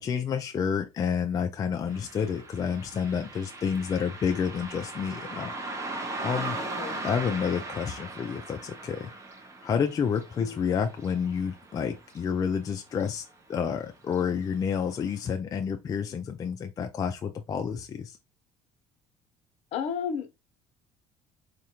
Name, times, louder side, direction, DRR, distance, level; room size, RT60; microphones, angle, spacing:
voice 1, 0.0-5.5 6.2-6.6 7.0-9.1 9.6-13.2 13.5-18.2, left 7 dB, 30° left, 0.4 m, -29 dB
Car passing by, 1.9-12.7 13.0-13.1 14.0-14.2 14.7-14.8 15.3-15.4, right 2 dB, 25° right, 0.8 m, -39 dB
voice 2, 6.7-7.0 10.4-10.6 19.7-20.4, left 7 dB, 60° left, 0.9 m, -33 dB
4.0 x 2.5 x 2.9 m
cardioid pair, 125°, 12 cm